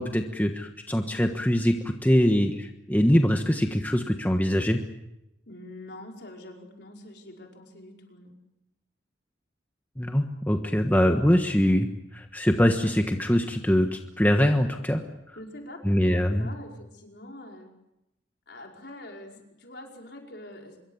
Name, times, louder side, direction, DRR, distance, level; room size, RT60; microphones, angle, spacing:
voice 1, 0.0-1.7 2.0-4.8 10.0-11.9 12.1-15.0 15.8-16.5, equal, 10° left, 4 dB, 1.3 m, -23 dB
voice 2, 5.5-8.3 15.3-17.7 18.5-20.8, left 1 dB, 60° left, 1 dB, 5.0 m, -44 dB
25.5 x 23.0 x 7.2 m, 0.87 s
head